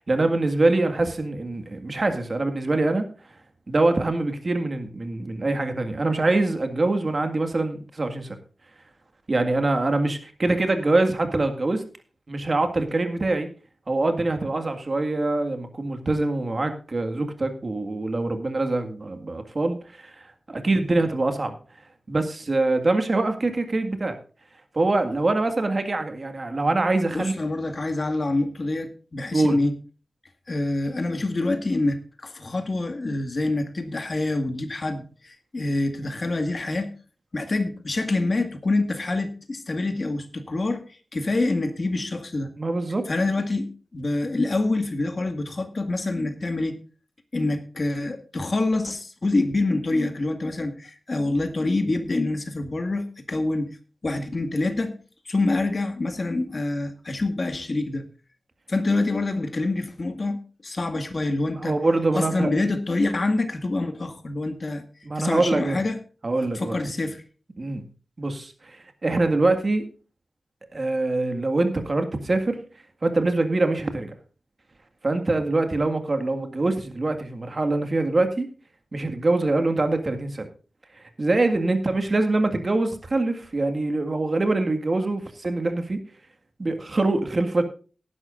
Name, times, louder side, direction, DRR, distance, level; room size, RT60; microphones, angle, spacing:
voice 1, 0.0-3.1 3.7-8.4 9.3-11.8 12.3-13.5 13.9-20.1 20.5-21.6 22.1-24.2 24.7-27.3 29.3-29.6 42.6-43.1 61.6-62.5 65.0-65.8 66.2-66.8 67.6-67.8 68.2-69.8 70.7-72.6 73.0-74.1 75.0-78.5 78.9-80.5 81.2-86.0 86.6-87.6, right 2 dB, 40° right, 6 dB, 1.9 m, -24 dB
voice 2, 27.1-29.7 30.5-36.9 37.3-40.8 41.1-42.5 43.1-46.8 47.3-53.7 54.0-54.9 55.3-58.0 58.7-61.8 62.1-64.8 65.2-66.0 66.5-67.2, left 2 dB, 45° left, 7 dB, 1.9 m, -26 dB
18.5 x 10.5 x 2.6 m, 0.36 s
wide cardioid pair, 115°, 0 cm